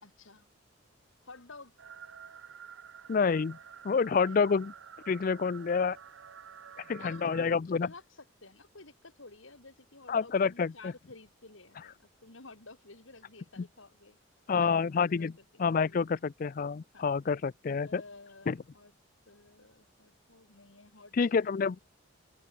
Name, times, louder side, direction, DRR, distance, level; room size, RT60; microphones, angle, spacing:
voice 1, 0.0-0.5 1.3-1.8 4.1-4.4 7.0-14.2 14.5-15.4 15.7-16.1 16.9-17.1 17.8-18.9 19.3-21.7, left 3 dB, 80° left, 3.5 m, -53 dB
sound 1, 1.8-7.5, right 7 dB, 80° right, 0.7 m, -50 dB
voice 2, 3.1-3.6 3.8-4.7 5.1-6.0 6.9-7.9 10.1-10.9 13.6-13.7 14.5-15.3 15.6-18.0 18.5-18.6 21.1-21.8, left 5 dB, 45° left, 0.4 m, -28 dB
head